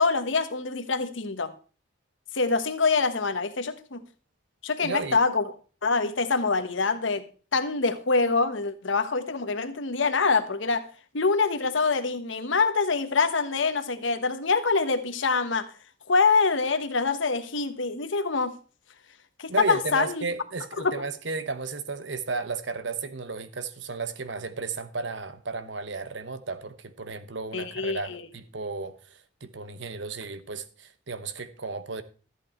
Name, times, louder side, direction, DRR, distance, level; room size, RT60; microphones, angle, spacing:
voice 1, 0.0-1.5 2.3-4.0 4.6-5.4 5.8-7.3 7.5-10.9 11.1-15.7 16.1-18.5 19.4-20.2 20.8-21.0 27.5-28.2, left 4 dB, 80° left, 1.2 m, -25 dB
voice 2, 4.8-5.2 19.5-32.0, right 4 dB, 75° right, 1.1 m, -34 dB
13.5 x 8.3 x 4.4 m
head